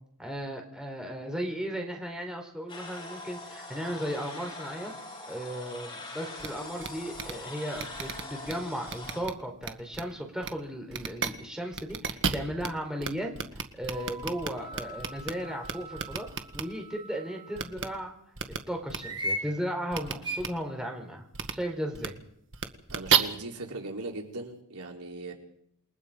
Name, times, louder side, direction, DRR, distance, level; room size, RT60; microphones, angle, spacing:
voice 1, 0.2-4.9 5.3-16.3 16.5-18.1 18.7-21.2 21.5-22.1, equal, 5° right, 2 dB, 4.4 m, -35 dB
sound 1, 2.7-9.2, left 2 dB, 25° left, 7.3 m, -42 dB
sound 2, 6.4-6.5 6.8-6.9 7.1-7.3 7.8-8.5 8.9-9.3 9.6-10.0 10.4-10.5 10.9-11.3 11.7-12.7 13.0-13.1 13.3-15.3 15.6-16.6 17.6-17.8 18.4-18.6 18.9-19.0 19.9-20.1 20.4-20.5 21.3-21.5 21.9-22.1 22.5-23.2, right 7 dB, 60° right, 1.6 m, -30 dB
sound 3, 13.9-17.7 19.0-19.5 20.2-20.4, right 1 dB, 20° right, 3.1 m, -39 dB
voice 2, 22.9-25.3, right 2 dB, 80° right, 1 dB, 4.1 m, -39 dB
28.5 x 21.5 x 5.2 m, 0.69 s
head